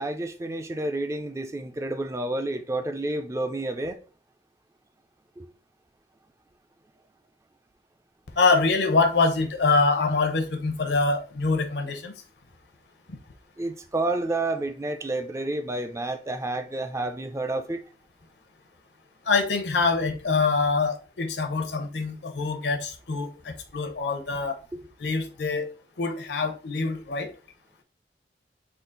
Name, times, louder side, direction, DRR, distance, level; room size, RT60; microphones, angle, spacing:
voice 1, 0.0-4.0 5.4-5.5 13.6-17.8 24.7-24.8, right 2 dB, 15° right, 0.3 m, -30 dB
voice 2, 8.4-12.1 13.1-13.2 19.3-24.6 25.0-25.7 26.0-27.3, left 3 dB, 75° left, 0.7 m, -25 dB
3.8 x 2.4 x 3.8 m
head